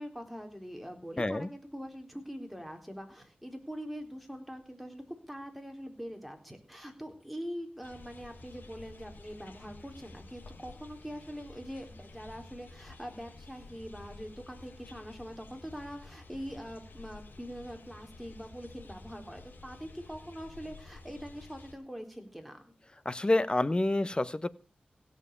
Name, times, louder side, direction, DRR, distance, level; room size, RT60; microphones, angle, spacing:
voice 1, 0.0-22.6, equal, ahead, 4 dB, 3.9 m, -43 dB
voice 2, 1.2-1.5 23.0-24.5, left 2 dB, 30° left, 15 dB, 1.0 m, -28 dB
sound 1, 7.8-21.7, left 2 dB, 80° left, 3.4 m, -51 dB
16.5 x 7.6 x 6.9 m, 0.35 s
wide cardioid pair, 65°, 3 cm